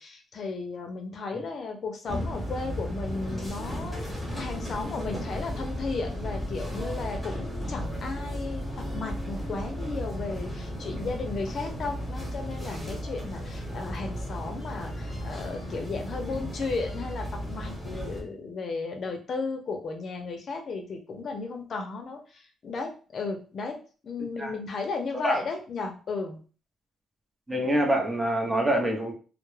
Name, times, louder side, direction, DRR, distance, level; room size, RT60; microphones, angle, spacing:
voice 1, 0.0-23.8 24.0-26.4, left 3 dB, 55° left, 3 dB, 0.5 m, -34 dB
sound 1, 2.1-18.2, equal, ahead, 1.1 m, -35 dB
sound 2, 5.0-12.5, right 1 dB, 70° right, 0.9 m, -47 dB
voice 2, 27.5-29.1, right 1 dB, 15° right, 1 dB, 0.7 m, -25 dB
2.2 x 2.0 x 3.1 m, 0.38 s
cardioid pair, 90°, 0 cm